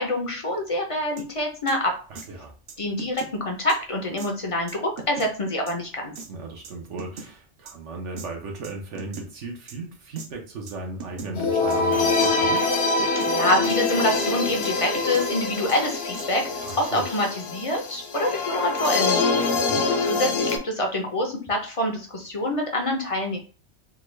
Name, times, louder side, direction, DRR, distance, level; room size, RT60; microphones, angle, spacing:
voice 1, 0.0-2.0 2.8-6.1 13.2-19.2 20.1-23.4, left 1 dB, 40° left, 2 dB, 0.5 m, -26 dB
sound 1, 1.2-1.3 1.7-1.8 2.1-2.3 2.7-3.3 3.7-3.8 4.2-4.3 4.7-5.3 5.7-5.8 6.2-6.3 6.6-7.3 7.7-7.8 8.2-8.3 8.6-9.3 9.7-9.8 10.2-10.3 10.7-10.8 11.0-11.3 11.7-11.8 12.2-12.3 12.7-13.3 13.7-13.8 14.1-14.3 14.6-15.3 15.7-15.8 16.1-16.3 16.7-17.2, right 4 dB, 60° right, 0.7 m, -39 dB
voice 2, 2.1-2.5 6.3-12.7 16.6-17.0 19.5-19.9, right 3 dB, 75° right, 2 dB, 1.2 m, -36 dB
sound 2, 11.3-20.6, left 3 dB, 65° left, 0.8 m, -24 dB
3.6 x 2.2 x 3.1 m, 0.37 s
omnidirectional pair, 1.2 m